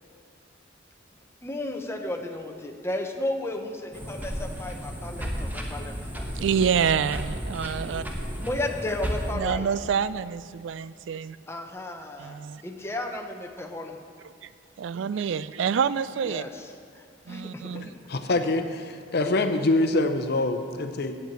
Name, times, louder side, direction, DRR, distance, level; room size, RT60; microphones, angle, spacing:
voice 1, 1.4-6.3 8.4-9.7 11.5-14.0 16.2-16.5 17.3-17.6, left 1 dB, 15° left, 3 dB, 0.9 m, -33 dB
sound 1, 3.9-9.3, equal, 10° right, 1.1 m, -33 dB
voice 2, 6.4-8.0 9.3-11.4 12.2-12.6 14.4-14.5 14.8-16.4 17.3-17.9, right 7 dB, 70° right, 16 dB, 0.3 m, -27 dB
voice 3, 17.7-21.1, left 2 dB, 60° left, 7 dB, 0.7 m, -25 dB
8.6 x 8.1 x 7.5 m, 2.4 s
head